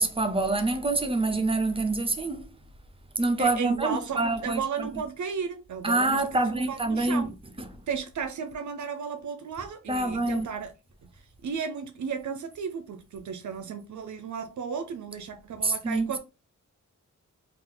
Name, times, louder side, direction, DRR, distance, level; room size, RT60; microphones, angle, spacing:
voice 1, 0.0-2.4 3.2-4.9 5.8-7.3 9.9-10.5 15.6-16.2, right 2 dB, 20° right, 0.5 m, -26 dB
voice 2, 3.4-7.3 7.9-10.7 11.0-11.1 11.4-16.2, right 6 dB, 70° right, 0.5 m, -34 dB
3.6 x 2.4 x 3.8 m
wide cardioid pair, 165°, 31 cm